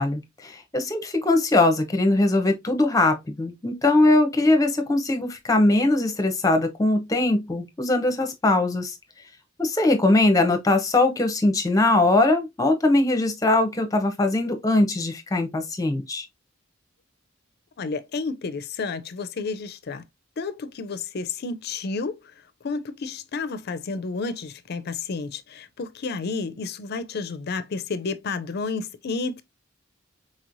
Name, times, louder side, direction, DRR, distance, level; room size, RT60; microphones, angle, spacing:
voice 1, 0.0-8.9 9.6-16.3, left 2 dB, 15° left, 0.7 m, -21 dB
voice 2, 17.8-20.0 20.4-22.2 22.6-29.4, left 4 dB, 50° left, 0.4 m, -31 dB
4.1 x 3.0 x 2.5 m
head